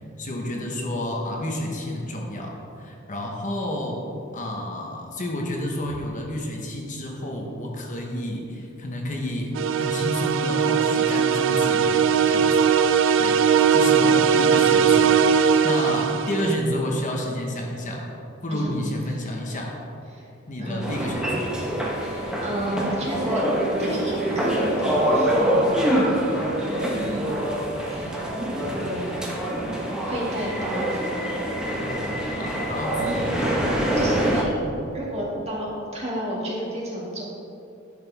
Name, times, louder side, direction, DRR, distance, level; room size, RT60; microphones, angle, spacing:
voice 1, 0.2-4.1 4.3-12.7 13.2-13.4 13.7-15.2 15.6-18.1 18.4-19.8 20.5-21.6 32.4-33.2, left 1 dB, 40° left, 0 dB, 1.0 m, -30 dB
sound 1, 9.5-16.5, right 7 dB, 65° right, 0.4 m, -19 dB
voice 2, 20.6-21.0 22.0-23.4 23.8-26.2 26.6-27.5 27.9-28.3 28.7-29.2 30.0-31.1 32.4-32.6 33.0-33.7 34.0-34.5 34.9-37.2, right 1 dB, 30° right, -5 dB, 2.0 m, -32 dB
sound 2, 20.8-34.4, right 1 dB, 5° right, 1.1 m, -25 dB
10.5 x 6.7 x 3.4 m, 2.8 s
head